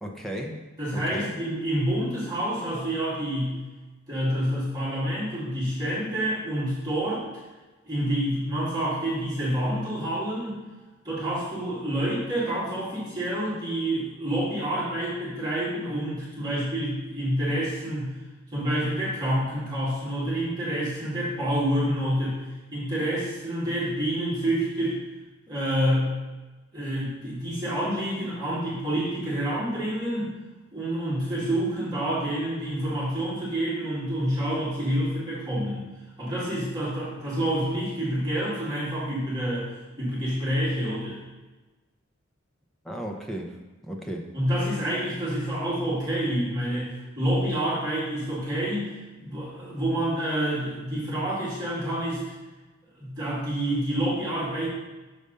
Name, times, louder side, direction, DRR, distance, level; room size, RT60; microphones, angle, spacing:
voice 1, 0.0-0.6 0.9-1.3 42.8-43.6 43.8-44.3, equal, ahead, 0 dB, 0.8 m, -34 dB
voice 2, 0.8-3.6 4.1-7.2 7.9-10.6 11.0-18.1 18.5-22.4 22.7-25.0 25.5-26.1 26.7-30.3 30.7-35.9 36.2-39.7 40.0-41.2 44.3-48.9 49.2-52.2 53.0-54.7, right 1 dB, 20° right, -9 dB, 2.3 m, -28 dB
6.7 x 5.1 x 5.4 m, 1.2 s
head